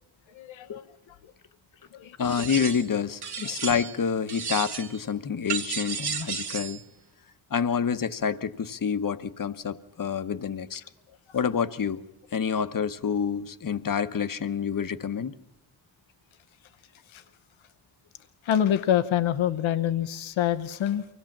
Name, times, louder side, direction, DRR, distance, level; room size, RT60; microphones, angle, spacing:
voice 1, 0.3-0.8 1.2-1.3 1.9-2.2 3.5-3.6 17.1-17.2 18.4-21.0, left 10 dB, 85° left, 1.0 m, -26 dB
voice 2, 2.2-6.8 7.5-10.8 11.3-12.0 12.3-15.3, left 7 dB, 45° left, 1.1 m, -28 dB
sound 1, 2.2-2.9 3.2-4.0 4.3-5.0 5.5-6.8, right 6 dB, 55° right, 1.5 m, -33 dB
24.0 x 17.0 x 7.4 m
cardioid pair, 50°, 46 cm